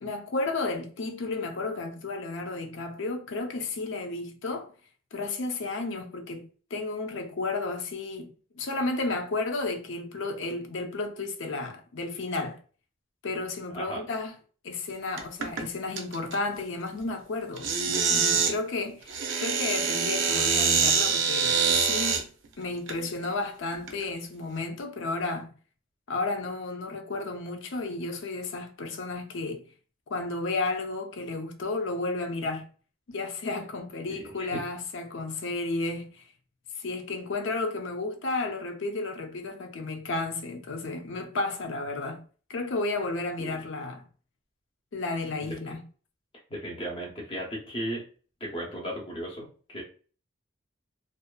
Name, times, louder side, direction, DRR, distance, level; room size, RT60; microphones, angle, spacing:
voice 1, 0.0-4.7 5.1-12.6 13.2-14.3 14.6-22.3 22.6-25.5 26.1-29.6 30.1-32.7 33.1-36.2 36.8-42.2 42.5-44.1 44.9-45.8, left 3 dB, 65° left, 0.5 m, -32 dB
voice 2, 13.7-14.0 34.1-34.6 43.4-43.6 46.5-48.0 48.4-49.8, right 1 dB, 25° left, 0.7 m, -35 dB
sound 1, 15.2-15.6 16.0-16.3 17.6-18.5 19.1-22.2 22.9-23.0 23.7-24.0, right 6 dB, 65° right, 0.5 m, -25 dB
2.6 x 2.4 x 2.2 m
head